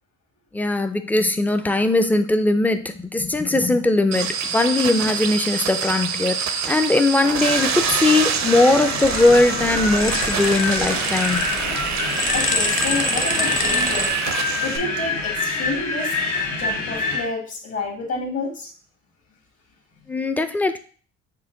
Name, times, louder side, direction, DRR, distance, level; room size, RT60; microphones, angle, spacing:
voice 1, 0.5-6.4 6.6-11.4 20.1-20.8, left 2 dB, 5° left, 8 dB, 0.4 m, -20 dB
sound 1, 4.1-14.8, right 7 dB, 65° right, 0.5 m, -26 dB
Wind, 7.4-17.3, left 3 dB, 75° left, 1.1 m, -26 dB
sound 2, 9.0-14.1, left 3 dB, 25° left, 0.7 m, -28 dB
voice 2, 12.3-14.1 14.6-16.1 16.6-18.7, left 3 dB, 55° left, 1 dB, 1.7 m, -29 dB
5.6 x 2.2 x 3.7 m, 0.43 s
cardioid pair, 90°, 30 cm